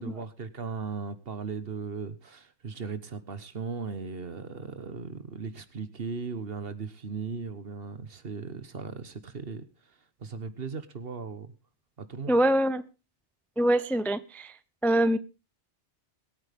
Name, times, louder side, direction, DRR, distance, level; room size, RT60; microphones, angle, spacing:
voice 1, 0.0-11.5 12.0-12.4, right 5 dB, 55° right, 12 dB, 1.4 m, -37 dB
voice 2, 12.3-12.8 13.6-14.5 14.8-15.2, right 1 dB, ahead, 14 dB, 0.5 m, -24 dB
21.5 x 9.0 x 3.5 m, 0.31 s
omnidirectional pair, 1.2 m